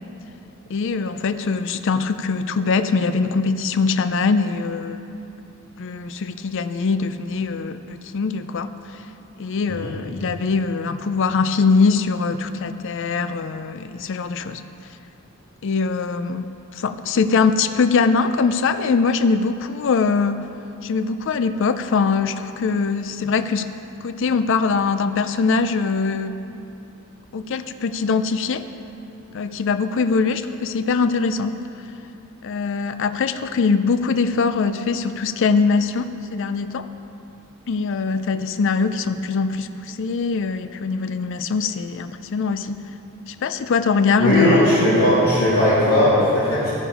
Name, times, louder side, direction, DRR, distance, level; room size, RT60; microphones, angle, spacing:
voice 1, 0.7-5.0 5.8-9.1 9.4-14.6 15.6-16.5 16.7-20.5 20.8-23.7 24.0-26.4 27.3-28.7 29.3-31.6 32.4-36.9 37.7-42.8 43.3-44.6, left 4 dB, 60° left, 11 dB, 0.4 m, -22 dB
voice 2, 44.2-46.7, left 1 dB, 80° left, -10 dB, 3.0 m, -17 dB
12.5 x 10.0 x 4.9 m, 2.8 s
head